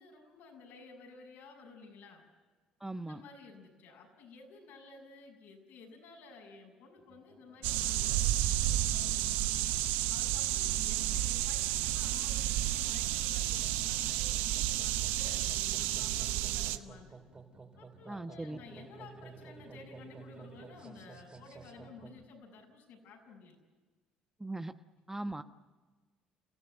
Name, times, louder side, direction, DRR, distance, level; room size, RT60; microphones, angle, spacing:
voice 1, 0.0-2.2 3.0-9.4 10.1-17.1 17.8-23.6 25.3-25.4, left 4 dB, 70° left, 1 dB, 6.9 m, -53 dB
voice 2, 2.8-3.2 18.1-18.6 24.4-24.7 25.1-25.4, right 2 dB, 10° right, 9 dB, 1.1 m, -39 dB
sound 1, 7.0-22.2, right 4 dB, 35° right, 4.1 m, -55 dB
sound 2, 7.6-16.8, right 14 dB, 75° right, 0.8 m, -31 dB
30.0 x 16.0 x 8.0 m, 1.3 s
hypercardioid pair, 55°, 3 cm